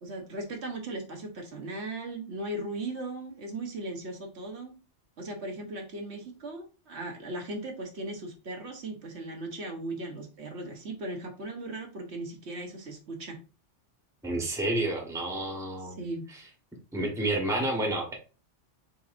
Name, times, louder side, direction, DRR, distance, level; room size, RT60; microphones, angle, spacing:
voice 1, 0.0-4.7 5.2-13.4 15.8-16.3, right 2 dB, 65° right, 2 dB, 1.2 m, -38 dB
voice 2, 14.2-16.0 16.3-16.4 16.9-18.2, right 1 dB, 5° right, 1 dB, 1.0 m, -30 dB
4.1 x 3.9 x 2.5 m, 0.34 s
omnidirectional pair, 1.2 m